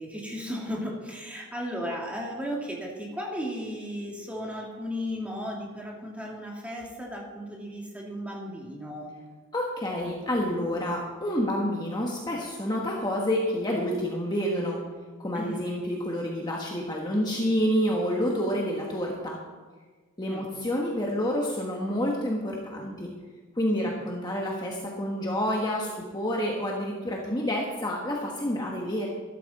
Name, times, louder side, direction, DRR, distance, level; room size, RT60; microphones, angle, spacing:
voice 1, 0.0-9.1 15.3-15.6 20.2-20.5 23.8-23.9, equal, 5° right, -2 dB, 2.0 m, -35 dB
voice 2, 9.5-14.8 15.2-19.4 20.2-23.1 23.5-29.1, equal, 20° left, -2 dB, 1.3 m, -28 dB
13.0 x 12.5 x 4.1 m, 1.4 s
head